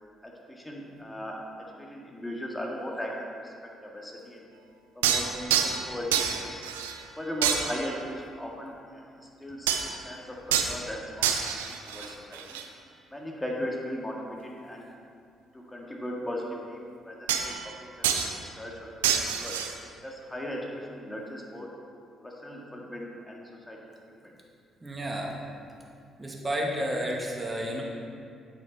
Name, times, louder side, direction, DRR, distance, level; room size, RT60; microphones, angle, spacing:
voice 1, 0.2-1.4 1.8-3.5 3.8-4.5 5.0-6.6 7.2-11.6 11.8-12.6 13.1-14.9 15.5-19.6 20.0-21.7 22.2-24.1, equal, 15° left, -2 dB, 2.0 m, -38 dB
sound 1, 5.0-5.9 6.1-7.1 7.4-8.0 9.7-10.0 10.5-10.8 11.2-12.7 17.3-17.8 18.0-18.4 19.0-19.7, right 8 dB, 90° right, 0.5 m, -27 dB
voice 2, 24.8-25.3 26.2-27.8, equal, 25° right, -1 dB, 1.9 m, -31 dB
9.2 x 6.2 x 4.2 m, 2.4 s
hypercardioid pair, 50°, 0 cm